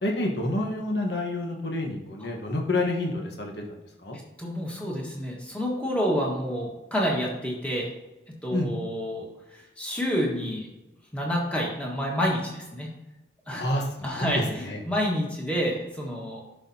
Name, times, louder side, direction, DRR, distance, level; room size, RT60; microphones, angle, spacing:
voice 1, 0.0-4.2 8.5-8.7 13.5-14.8, left 1 dB, 70° left, 0 dB, 1.3 m, -28 dB
voice 2, 4.4-7.9 8.3-9.2 9.5-10.7 11.1-12.9 13.5-13.7 14.0-16.4, equal, 5° left, -3 dB, 1.6 m, -29 dB
11.0 x 5.8 x 2.8 m, 0.97 s
head